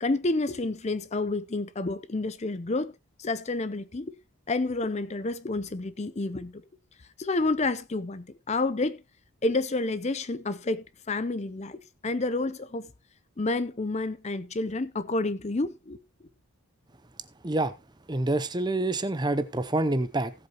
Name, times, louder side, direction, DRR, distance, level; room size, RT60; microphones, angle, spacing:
voice 1, 0.0-2.9 3.2-4.2 4.5-6.6 7.2-9.0 9.4-12.9 13.4-16.3, left 2 dB, 30° left, 0.5 m, -29 dB
voice 2, 18.1-20.3, right 2 dB, 20° right, 0.6 m, -27 dB
17.0 x 7.8 x 2.9 m
head